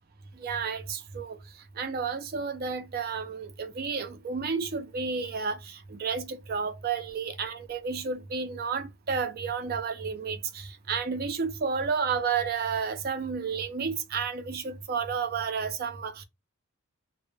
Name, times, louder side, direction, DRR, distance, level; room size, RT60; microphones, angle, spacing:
voice 1, 0.4-1.4 1.8-16.2, right 5 dB, 45° right, 0.4 m, -31 dB
2.1 x 2.0 x 3.0 m
head